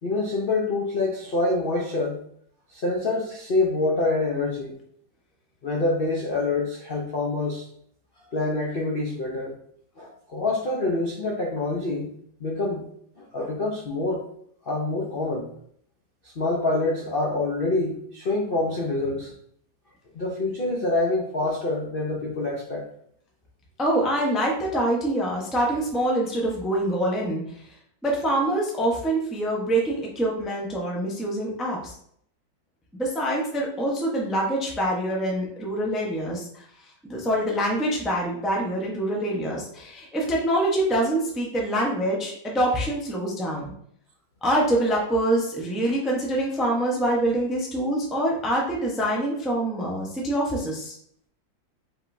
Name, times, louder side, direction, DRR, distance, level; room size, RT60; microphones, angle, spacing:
voice 1, 0.0-2.2 2.7-4.8 5.6-7.7 8.3-9.6 10.0-12.1 12.4-12.8 13.2-14.2 14.6-15.5 16.2-19.3 20.1-22.9, left 2 dB, 65° left, -3 dB, 0.5 m, -26 dB
voice 2, 23.8-27.7 28.0-31.9 32.9-36.6 37.0-43.7 44.4-50.9, right 1 dB, ahead, -2 dB, 0.4 m, -25 dB
5.0 x 3.8 x 2.6 m, 0.66 s
omnidirectional pair, 2.0 m